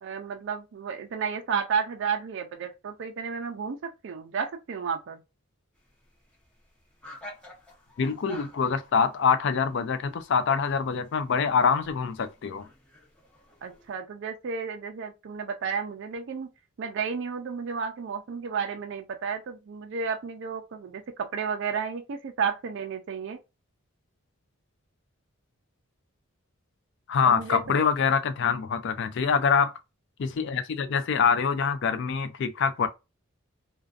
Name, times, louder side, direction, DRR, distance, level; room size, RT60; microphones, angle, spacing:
voice 1, 0.0-5.2 13.6-16.5 16.8-23.4 27.2-27.9, right 6 dB, 55° right, 0.4 m, -32 dB
sound 1, 5.7-13.9, left 1 dB, 5° left, 0.7 m, -51 dB
voice 2, 8.0-12.7 27.1-29.7 30.2-32.9, left 6 dB, 55° left, 0.3 m, -25 dB
2.5 x 2.2 x 2.3 m
head